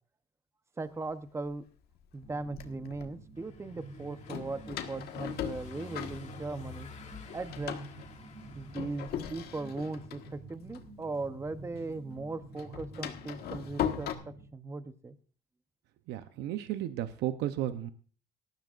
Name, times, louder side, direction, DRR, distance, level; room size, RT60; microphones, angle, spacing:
voice 1, 0.8-1.6 2.1-6.9 7.3-7.8 8.5-15.1, right 3 dB, 15° right, 11 dB, 0.8 m, -38 dB
Door, 1.1-1.2 2.0-3.1 4.3-6.8 7.1-11.6 11.9-14.1, left 10 dB, 70° left, 1.5 m, -39 dB
sound 1, 2.2-14.5, right 3 dB, 35° right, 7.0 m, -48 dB
Car passing by / Engine, 3.3-10.1, left 6 dB, 45° left, 2.1 m, -52 dB
voice 2, 16.1-17.9, right 12 dB, 85° right, 10 dB, 0.8 m, -34 dB
18.5 x 13.0 x 2.5 m, 0.40 s
cardioid pair, 110°, 17 cm